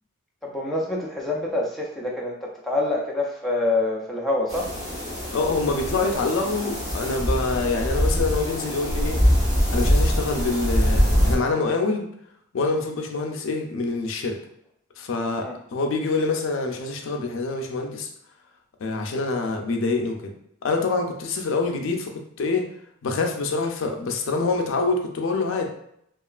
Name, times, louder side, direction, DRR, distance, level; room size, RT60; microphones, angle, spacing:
voice 1, 0.4-4.7 15.4-15.6, left 2 dB, ahead, -4 dB, 0.3 m, -26 dB
sound 1, 4.5-11.3, equal, 35° right, 1.0 m, -23 dB
voice 2, 5.3-9.2 9.7-12.1 12.5-14.4 15.0-18.1 18.8-20.2 20.6-22.6 23.0-25.7, left 3 dB, 65° left, 3 dB, 0.4 m, -25 dB
2.9 x 2.3 x 2.3 m, 0.73 s
head